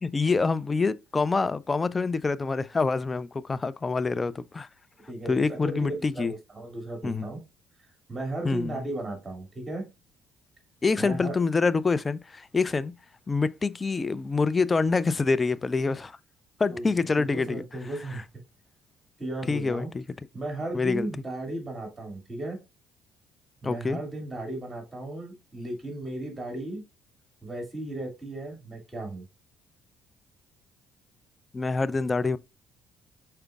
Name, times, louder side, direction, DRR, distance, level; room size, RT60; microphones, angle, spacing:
voice 1, 0.0-4.7 5.3-6.3 7.0-7.3 8.4-8.9 10.8-12.9 13.3-16.2 16.6-17.6 18.1-18.2 19.5-20.0 20.7-21.1 23.6-24.0 31.5-32.4, left 4 dB, 30° left, 0.4 m, -26 dB
voice 2, 5.1-7.4 8.1-9.8 11.0-11.4 16.7-16.9 17.2-18.2 19.2-19.9 20.3-22.6 23.6-26.8 27.4-29.3, right 1 dB, 25° right, 2.3 m, -35 dB
5.0 x 4.4 x 2.4 m
supercardioid pair, 65°, 0 cm